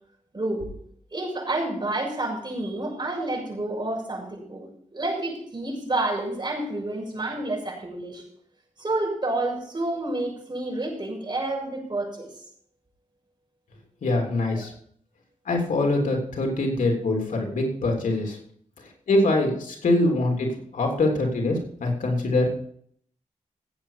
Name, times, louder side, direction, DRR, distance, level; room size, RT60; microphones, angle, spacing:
voice 1, 0.3-0.7 1.1-8.2 8.8-12.3 14.5-14.6, right 2 dB, 35° right, -1 dB, 6.9 m, -29 dB
voice 2, 14.0-14.7 15.4-18.4 18.8-22.5, left 2 dB, 90° left, 1 dB, 3.4 m, -24 dB
16.0 x 8.6 x 5.8 m, 0.62 s
cardioid pair, 70°, 13 cm